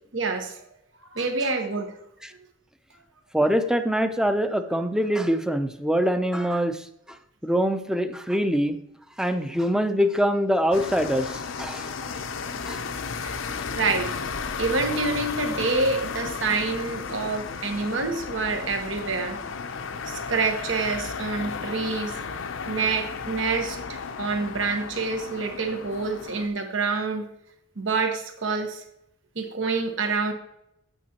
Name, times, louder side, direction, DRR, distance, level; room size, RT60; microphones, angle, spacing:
voice 1, 0.1-0.6 1.1-1.9 13.2-13.3 13.7-19.4 20.0-22.2 22.6-27.3 27.8-28.8 29.3-30.3, right 4 dB, 75° right, 5 dB, 1.2 m, -27 dB
voice 2, 3.3-7.2 7.4-8.8 9.2-11.9 12.7-12.8, equal, 5° right, 9 dB, 0.6 m, -24 dB
sound 1, 10.7-26.5, left 5 dB, 85° left, 0.6 m, -34 dB
9.1 x 8.3 x 2.9 m, 0.78 s
head